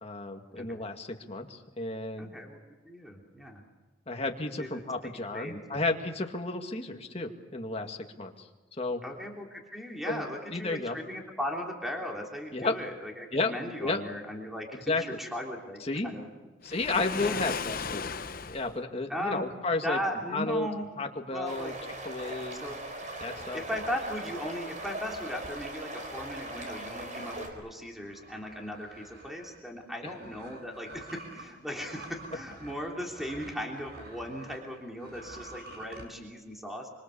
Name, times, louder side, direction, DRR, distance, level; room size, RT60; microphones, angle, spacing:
voice 1, 0.0-2.3 4.1-8.5 8.8-9.0 10.1-10.2 10.5-11.0 12.5-12.7 13.3-13.5 13.8-14.0 14.7-15.0 15.8-16.1 16.6-18.1 18.5-20.0 20.3-20.7 21.0-21.7 22.1-22.7 23.2-23.6, left 3 dB, 30° left, 4 dB, 2.1 m, -32 dB
voice 2, 2.2-2.6 2.8-3.6 4.6-5.8 9.0-16.3 17.2-17.4 19.1-19.5 19.8-21.7 22.2-22.8 23.5-36.9, equal, ahead, 0 dB, 3.2 m, -38 dB
Waves surf, 16.6-18.7, left 5 dB, 45° left, 0.9 m, -35 dB
sound 1, 21.4-27.5, right 1 dB, 40° right, 4.5 m, -40 dB
sound 2, 23.2-34.7 34.9-36.1, right 2 dB, 55° right, 5.2 m, -50 dB
26.0 x 25.5 x 7.1 m, 1.3 s
head